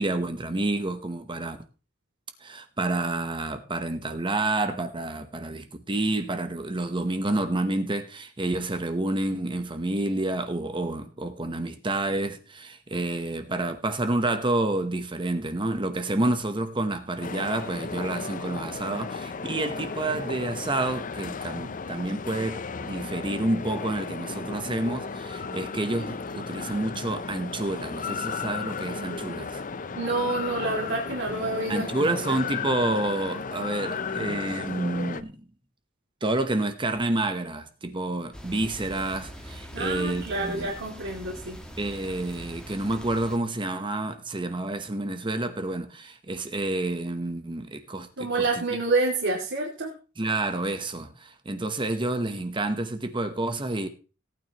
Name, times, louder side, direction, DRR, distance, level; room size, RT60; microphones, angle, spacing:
voice 1, 0.0-1.6 2.4-29.6 31.7-35.4 36.2-40.7 41.8-48.6 50.2-53.9, right 2 dB, 25° right, 1.0 m, -29 dB
sound 1, 17.2-35.2, left 5 dB, 40° left, 0.6 m, -34 dB
voice 2, 29.9-32.4 39.7-41.6 48.2-49.9, right 2 dB, 65° right, 2.6 m, -28 dB
sound 2, 38.3-43.4, equal, 5° left, 1.7 m, -42 dB
18.0 x 9.2 x 3.0 m
head